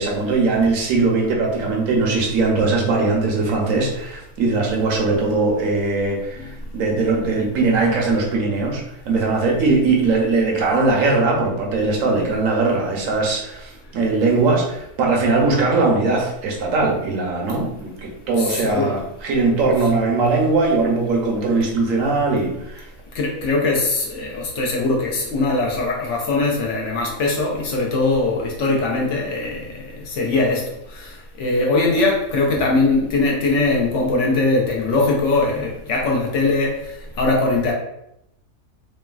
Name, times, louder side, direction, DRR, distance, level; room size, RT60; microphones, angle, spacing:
voice 1, 0.0-22.9, right 3 dB, 75° right, -1 dB, 1.0 m, -20 dB
voice 2, 18.4-19.0 23.1-30.6 30.9-37.7, left 3 dB, 65° left, -1 dB, 0.8 m, -21 dB
3.1 x 2.2 x 2.3 m, 0.81 s
omnidirectional pair, 1.5 m